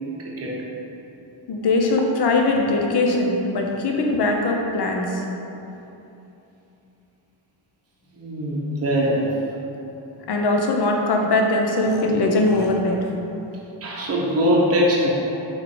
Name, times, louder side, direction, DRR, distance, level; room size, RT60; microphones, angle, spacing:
voice 1, 0.2-0.6 8.1-9.3 13.8-15.1, equal, 30° right, -4 dB, 0.8 m, -21 dB
voice 2, 1.5-5.2 10.3-13.1, left 2 dB, 60° left, 1 dB, 0.6 m, -21 dB
3.6 x 3.1 x 3.7 m, 3.0 s
cardioid pair, 80°, 47 cm